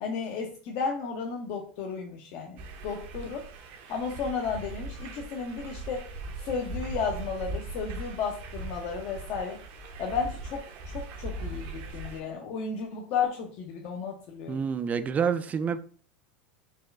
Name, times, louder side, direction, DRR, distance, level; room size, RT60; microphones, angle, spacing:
voice 1, 0.0-3.5 3.9-6.1 6.4-9.6 10.0-14.6, left 5 dB, 50° left, 0.7 m, -33 dB
sound 1, 2.6-12.2, right 2 dB, 55° right, 0.7 m, -39 dB
voice 2, 14.5-15.8, right 6 dB, 25° right, 0.3 m, -28 dB
4.3 x 2.3 x 3.3 m
hypercardioid pair, 100°, 6 cm